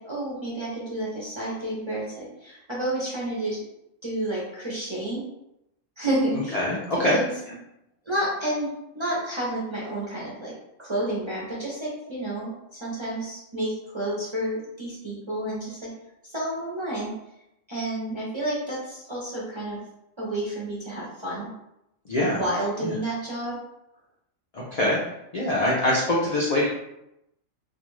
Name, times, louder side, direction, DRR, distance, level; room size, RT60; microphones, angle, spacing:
voice 1, 0.0-3.6 4.0-5.2 6.0-6.6 7.1-7.3 8.1-8.7 8.9-10.5 10.8-15.9 16.2-17.1 17.7-19.8 20.2-21.5 22.2-23.6, right 1 dB, 40° right, -6 dB, 0.4 m, -30 dB
voice 2, 6.5-7.2 22.1-22.5 22.8-22.9 24.5-25.0 25.3-26.7, left 1 dB, 90° left, -6 dB, 0.3 m, -23 dB
2.4 x 2.3 x 3.0 m, 0.85 s
omnidirectional pair, 1.3 m